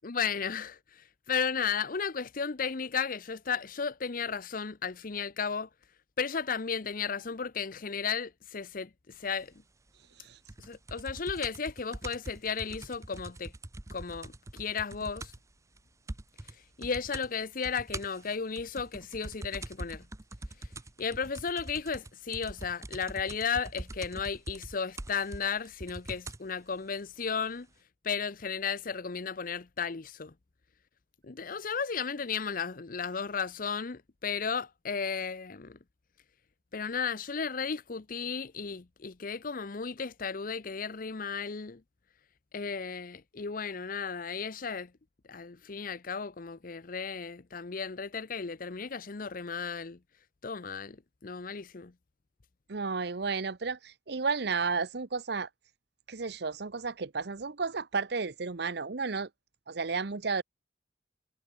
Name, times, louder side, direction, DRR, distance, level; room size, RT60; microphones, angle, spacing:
voice 1, 0.0-5.7 6.2-9.5 10.6-13.5 13.9-15.3 16.8-20.1 21.0-27.7 28.0-30.3 31.2-35.8 36.7-41.8 42.5-44.9 45.3-50.0 50.4-51.0 51.2-51.9, left 6 dB, 50° left, 0.7 m, -34 dB
sound 1, 10.5-15.5 15.8-15.9 16.1-16.5 16.8-17.3 17.6-26.5 27.3-27.4, right 2 dB, 15° right, 0.7 m, -43 dB
voice 2, 52.7-55.5 56.1-59.3 59.7-60.4, right 4 dB, 65° right, 0.9 m, -32 dB
head